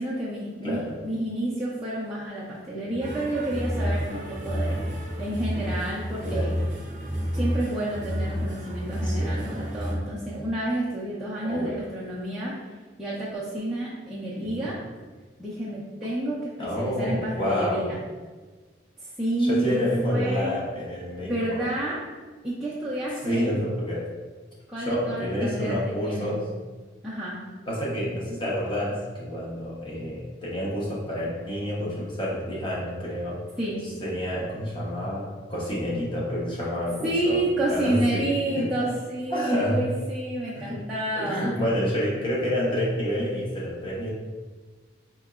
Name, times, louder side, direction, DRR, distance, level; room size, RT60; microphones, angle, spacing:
voice 1, 0.0-4.8 5.2-6.5 7.3-12.6 13.0-14.8 15.4-18.0 19.0-19.8 20.0-20.6 21.2-22.0 22.4-23.5 24.7-26.4 27.0-27.4 33.6-33.8 37.0-41.5, right 1 dB, 5° right, -10 dB, 0.5 m, -29 dB
voice 2, 0.6-0.9 2.9-3.0 6.2-6.5 9.0-9.4 11.4-11.8 14.4-14.7 16.6-17.9 19.4-21.7 23.2-24.1 24.8-26.5 27.7-33.4 33.8-37.4 37.7-38.3 38.6-38.9 39.3-39.8 40.5-40.8 41.1-44.1, equal, 25° left, -6 dB, 0.9 m, -28 dB
sound 1, 3.0-10.0, equal, 40° right, 0.6 m, -30 dB
4.3 x 2.9 x 2.4 m, 1.4 s
head